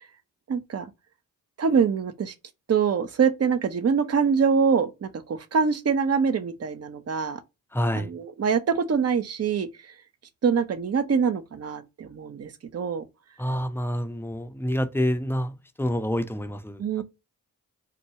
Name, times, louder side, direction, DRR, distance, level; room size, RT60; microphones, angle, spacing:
voice 1, 0.5-0.9 1.6-2.3 2.7-7.4 7.9-9.7 10.4-13.0 16.8-17.0, right 6 dB, 45° right, 0.7 m, -24 dB
voice 2, 7.7-8.1 13.4-17.0, equal, 5° left, 0.5 m, -28 dB
4.0 x 2.3 x 2.8 m
supercardioid pair, 45°, 36 cm